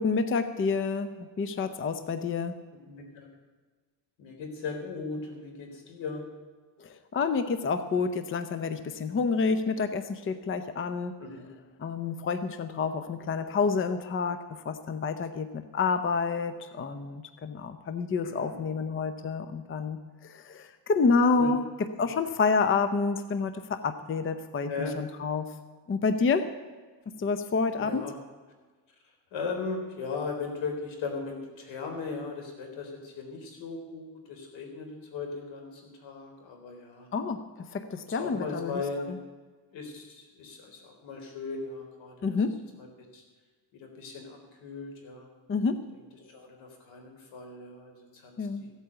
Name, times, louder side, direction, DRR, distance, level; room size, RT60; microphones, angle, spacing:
voice 1, 0.0-2.5 6.8-11.1 11.8-21.6 22.0-24.7 25.0-25.5 25.9-26.5 27.2-28.0 37.1-38.8 39.1-39.2 42.2-42.6 45.5-45.8 48.4-48.6, left 4 dB, 30° left, 10 dB, 0.7 m, -28 dB
voice 2, 2.9-3.3 4.2-6.2 11.2-11.5 18.2-18.6 21.3-21.5 22.0-22.1 24.7-24.9 27.8-28.1 29.3-37.1 38.1-39.2 39.7-42.3 42.8-43.2 43.7-45.3 45.9-48.7, left 4 dB, 85° left, 3 dB, 3.8 m, -38 dB
15.0 x 8.7 x 8.0 m, 1.4 s
cardioid pair, 145°, 45 cm